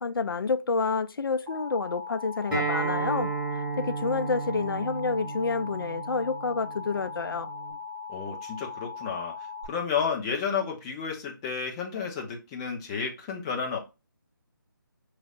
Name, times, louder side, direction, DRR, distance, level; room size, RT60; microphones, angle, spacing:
voice 1, 0.0-7.5, left 4 dB, 80° left, 0.4 m, -29 dB
Alarm, 1.5-9.7, left 5 dB, 50° right, 1.3 m, -39 dB
Acoustic guitar, 2.5-7.7, right 4 dB, 5° right, 1.4 m, -33 dB
voice 2, 8.1-9.4 9.7-13.8, left 6 dB, 15° left, 0.6 m, -31 dB
5.3 x 3.2 x 2.4 m
figure-of-eight pair, 160°, 12 cm